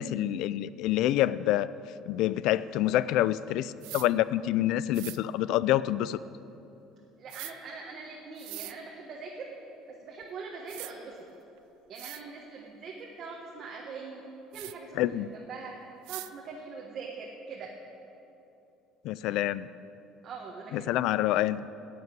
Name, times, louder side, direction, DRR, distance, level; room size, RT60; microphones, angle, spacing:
voice 1, 0.0-1.7 2.1-6.2 15.0-15.3 19.0-19.7 20.7-21.7, left 13 dB, 65° left, 17 dB, 0.3 m, -27 dB
sound 1, 3.8-4.1 4.9-5.2 7.3-7.5 8.4-8.7 10.2-10.3 10.7-10.9 11.6-11.7 12.0-12.2 14.5-14.7 16.1-16.3, right 21 dB, 85° right, 0.3 m, -41 dB
voice 2, 7.2-9.4 10.0-11.1 11.9-14.2 14.5-15.0 15.3-15.7 16.1-17.7 20.2-20.9, right 4 dB, 40° right, -2 dB, 1.5 m, -42 dB
11.0 x 8.1 x 9.1 m, 2.9 s
cardioid pair, 160°, 0 cm